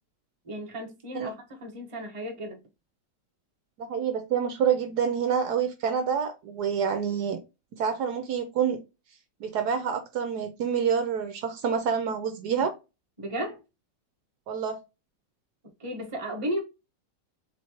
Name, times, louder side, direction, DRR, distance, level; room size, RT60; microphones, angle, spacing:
voice 1, 0.4-2.6 13.2-13.6 15.8-16.6, equal, 20° right, 1.1 m, -34 dB
voice 2, 3.8-7.4 7.7-8.8 9.4-12.7 14.5-14.8, right 7 dB, 70° right, 1.2 m, -27 dB
4.2 x 3.7 x 2.9 m
omnidirectional pair, 1.9 m